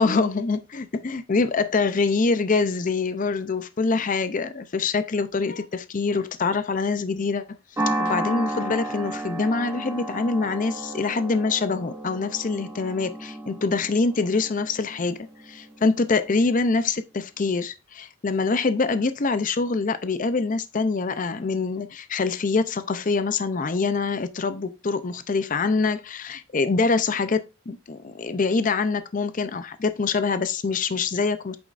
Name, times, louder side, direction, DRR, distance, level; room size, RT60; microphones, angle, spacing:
voice 1, 0.0-7.6 8.0-31.6, left 4 dB, 35° left, 0.5 m, -25 dB
sound 1, 7.8-16.3, right 1 dB, 15° right, 2.3 m, -32 dB
8.5 x 7.2 x 2.5 m
head